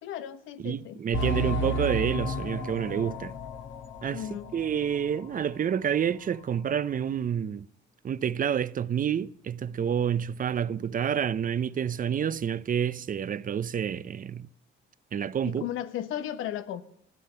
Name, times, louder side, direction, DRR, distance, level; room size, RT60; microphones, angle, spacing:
voice 1, 0.0-1.0 4.1-4.5 15.4-16.8, left 11 dB, 90° left, 1.1 m, -35 dB
voice 2, 0.6-3.3 4.0-7.7 8.0-14.5 15.1-15.7, right 8 dB, 45° right, 0.6 m, -29 dB
sound 1, 1.1-5.4 5.7-5.8 6.4-6.5, equal, 70° left, 1.9 m, -33 dB
15.0 x 11.5 x 5.6 m
cardioid pair, 90°, 20 cm